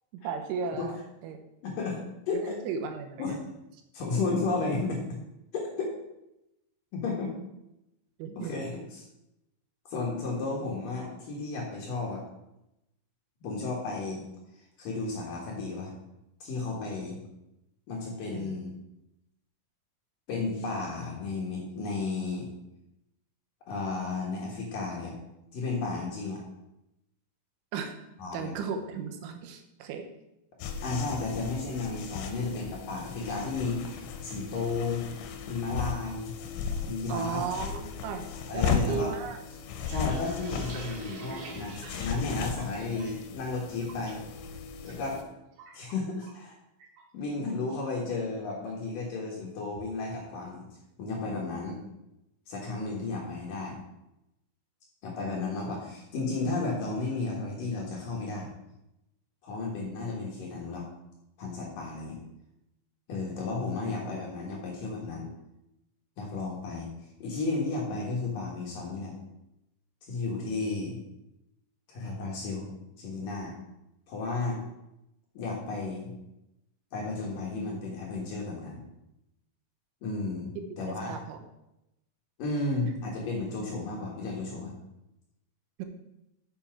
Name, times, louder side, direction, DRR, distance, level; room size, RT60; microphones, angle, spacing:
voice 1, 0.1-1.0 1.2-1.4 2.3-3.4 8.2-8.5 18.3-18.6 27.7-28.0 28.3-30.1 37.1-38.2 38.5-39.4 81.1-81.4 85.8-85.9, right 6 dB, 85° right, 5 dB, 3.4 m, -35 dB
voice 2, 1.6-2.5 3.2-3.4 3.9-5.2 5.5-5.9 6.9-7.3 8.4-9.0 9.9-12.2 13.4-14.2 14.8-15.9 16.4-17.2 17.9-18.7 20.3-22.5 23.7-25.1 25.5-26.4 28.2-28.5 30.8-35.0 35.5-36.3 36.9-37.4 38.5-39.1 39.9-44.2 44.8-45.2 45.7-46.6 47.1-50.7 51.0-51.8 52.5-53.8 55.0-58.5 59.4-60.8 61.4-62.2 63.1-65.3 66.2-66.9 67.2-69.1 70.1-71.0 71.9-72.7 73.0-73.5 74.1-74.6 75.3-76.1 76.9-78.8 80.0-80.5 80.8-81.2 82.4-84.7, left 3 dB, 60° left, -2 dB, 2.5 m, -33 dB
sound 1, 30.6-45.2, left 6 dB, 75° left, 3.1 m, -36 dB
sound 2, 39.6-43.3 43.6-44.1 44.5-44.9 45.2-46.5 46.8-47.0 47.4-47.8, right 3 dB, 70° right, 3.7 m, -46 dB
7.1 x 7.0 x 5.9 m, 0.88 s
omnidirectional pair, 5.4 m